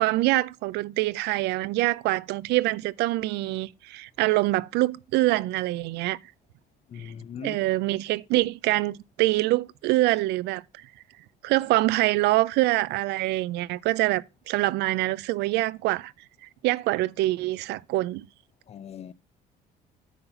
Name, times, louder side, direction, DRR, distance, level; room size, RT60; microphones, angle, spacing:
voice 1, 0.0-6.2 7.0-7.1 7.4-10.9 11.4-16.1 16.6-18.3, right 18 dB, 80° right, 0.4 m, -25 dB
voice 2, 6.9-7.6 18.7-19.1, left 8 dB, 40° left, 0.4 m, -40 dB
9.3 x 4.0 x 6.8 m
cardioid pair, 110°, 17 cm